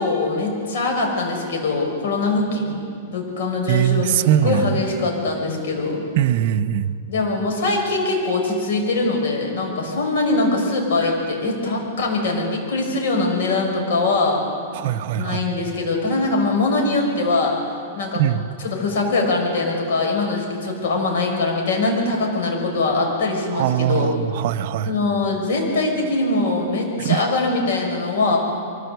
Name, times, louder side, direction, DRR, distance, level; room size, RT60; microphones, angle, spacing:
voice 1, 0.0-6.0 7.1-14.4 15.1-17.6 17.9-18.2 18.6-24.1 24.9-28.4, left 3 dB, 65° left, 1 dB, 6.2 m, -22 dB
voice 2, 3.7-4.7 6.2-6.9 14.7-15.4 18.1-18.4 23.5-24.9 27.0-27.2, right 11 dB, 50° right, 8 dB, 0.7 m, -21 dB
23.5 x 16.0 x 8.0 m, 2.4 s
supercardioid pair, 155°, 0 cm